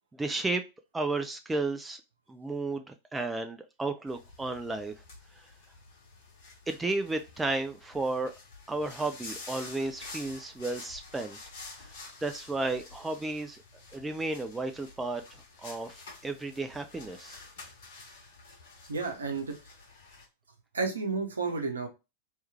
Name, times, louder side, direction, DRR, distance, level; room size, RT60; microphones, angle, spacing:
voice 1, 0.1-0.6 0.9-2.0 2.3-4.9 6.7-8.3 8.7-11.4 12.2-13.6 13.9-15.2 15.6-17.4, right 2 dB, 10° right, 7 dB, 0.4 m, -33 dB
sound 1, 4.1-20.2, left 3 dB, 55° left, 1.8 m, -49 dB
voice 2, 18.9-19.5 20.7-21.9, right 4 dB, 75° right, 4 dB, 0.8 m, -31 dB
3.2 x 3.1 x 3.4 m, 0.26 s
figure-of-eight pair, 90°, 0 cm